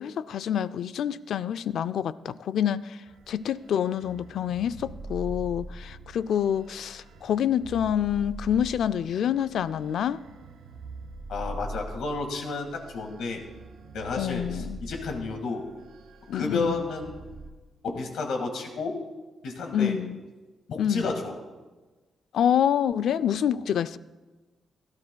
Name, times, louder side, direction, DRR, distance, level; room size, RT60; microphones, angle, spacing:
voice 1, 0.0-10.2 14.1-14.8 16.3-16.8 19.7-20.2 20.8-21.1 22.3-24.0, left 9 dB, 70° left, 0.3 m, -27 dB
sound 1, 3.1-17.5, right 2 dB, 90° right, 1.0 m, -43 dB
voice 2, 11.3-13.4 13.9-15.6 16.3-17.3 17.8-19.0 19.4-20.0 20.7-21.3, left 3 dB, 90° left, 1.8 m, -31 dB
17.0 x 12.0 x 2.3 m
wide cardioid pair, 160°, 0 cm